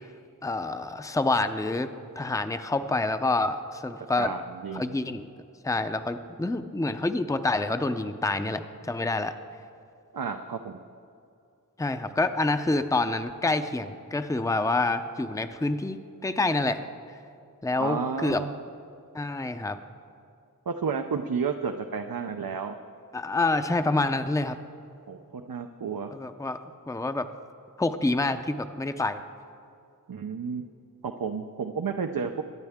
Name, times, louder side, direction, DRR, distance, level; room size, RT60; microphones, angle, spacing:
voice 1, 0.4-1.9 2.2-4.3 4.7-5.3 5.6-9.3 11.8-16.8 17.6-18.4 19.1-19.8 23.1-24.6 26.1-26.6 26.9-27.3 27.8-29.2, left 2 dB, 10° left, 9 dB, 0.6 m, -27 dB
voice 2, 4.2-5.0 10.1-10.8 17.8-18.6 20.7-22.8 25.1-26.1 30.1-30.6 31.0-32.4, right 6 dB, 75° right, 5 dB, 0.6 m, -31 dB
23.0 x 9.7 x 3.6 m, 2.5 s
wide cardioid pair, 50°, 35 cm